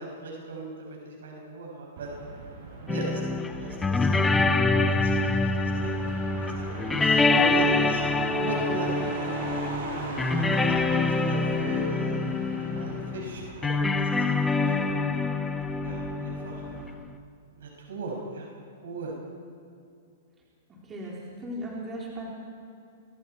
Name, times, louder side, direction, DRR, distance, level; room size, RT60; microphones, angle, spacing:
voice 1, 0.0-2.1 2.8-3.2 3.5-4.3 4.8-5.3 5.6-5.9 6.4-9.3 9.9-15.1 15.8-16.6 17.6-18.5 18.8-19.1, right 2 dB, 90° right, -1 dB, 6.8 m, -37 dB
Motor vehicle (road), 2.0-16.9, right 3 dB, 55° right, 6.2 m, -40 dB
sound 1, 2.9-17.0, left 3 dB, 5° left, 0.8 m, -26 dB
voice 2, 20.7-22.3, equal, 15° right, -5 dB, 4.0 m, -37 dB
30.0 x 25.0 x 4.7 m, 2.5 s
hypercardioid pair, 170°, 0 cm